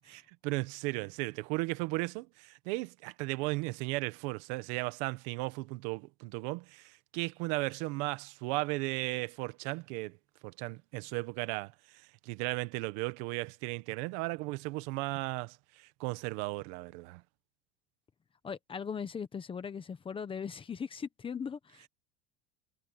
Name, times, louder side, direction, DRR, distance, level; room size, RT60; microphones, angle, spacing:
voice 1, 0.1-10.2 10.4-17.2, right 23 dB, 80° right, 1.2 m, -36 dB
voice 2, 18.4-21.9, left 6 dB, 15° left, 0.9 m, -39 dB
cardioid pair, 180°, 34 cm